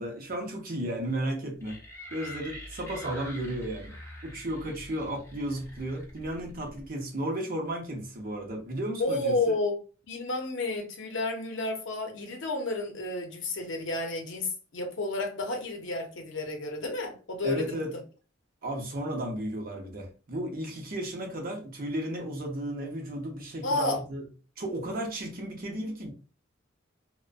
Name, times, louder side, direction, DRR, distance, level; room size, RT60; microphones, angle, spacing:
voice 1, 0.0-1.8 2.1-4.0 4.2-9.5 17.4-17.9 18.6-24.3 24.6-26.1, right 1 dB, 45° right, 0.6 m, -34 dB
sound 1, 1.6-6.9, equal, 15° left, 0.8 m, -45 dB
voice 2, 9.0-9.8 10.1-18.0 23.6-24.0, left 2 dB, 65° left, 0.6 m, -31 dB
2.4 x 2.1 x 2.4 m
head